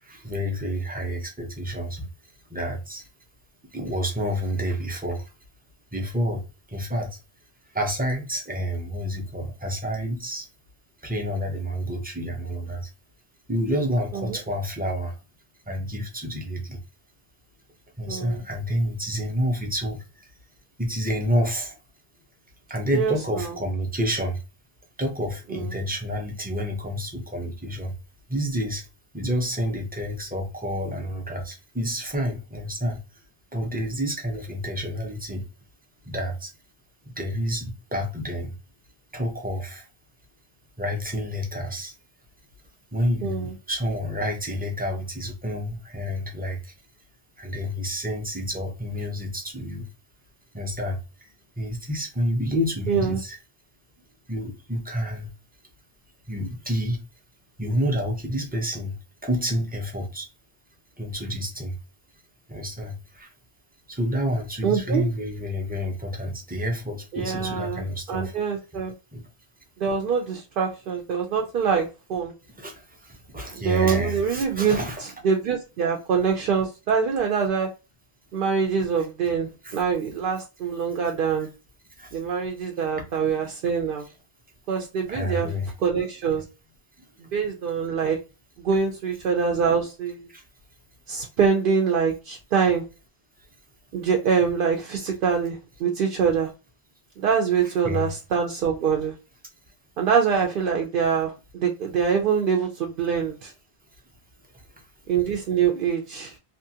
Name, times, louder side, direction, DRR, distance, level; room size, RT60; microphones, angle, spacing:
voice 1, 0.0-2.1 2.5-3.1 3.7-5.3 5.9-6.4 6.7-7.2 7.7-10.5 11.0-12.9 13.5-15.2 15.7-16.8 18.0-20.3 20.8-21.8 22.7-24.4 25.0-28.0 28.3-28.9 29.1-33.2 33.5-35.5 36.0-36.5 37.1-38.6 39.1-39.9 40.8-41.9 42.9-46.7 47.4-49.9 50.5-53.4 54.3-55.3 56.3-57.0 57.6-58.9 59.2-60.3 61.0-61.8 62.5-63.3 63.9-68.4 69.1-69.3 72.5-75.0 79.0-79.1 79.6-79.8 81.4-81.5 82.0-82.3 82.8-82.9 83.6-83.8 85.1-85.7 87.0-87.1 90.3-90.4 97.6-98.1 104.5-104.9, equal, 10° right, 0.4 m, -29 dB
voice 2, 18.1-18.4 22.9-23.5 25.5-25.7 43.2-43.5 52.9-53.2 64.6-65.0 67.1-68.9 69.8-72.3 73.5-74.8 75.2-77.7 78.3-81.5 82.1-84.0 84.7-85.5 85.8-86.4 87.3-88.2 88.6-90.3 91.1-92.8 93.9-96.5 97.2-99.1 100.0-103.5 105.1-106.4, right 6 dB, 60° right, 0.7 m, -24 dB
2.9 x 2.3 x 2.7 m
omnidirectional pair, 1.1 m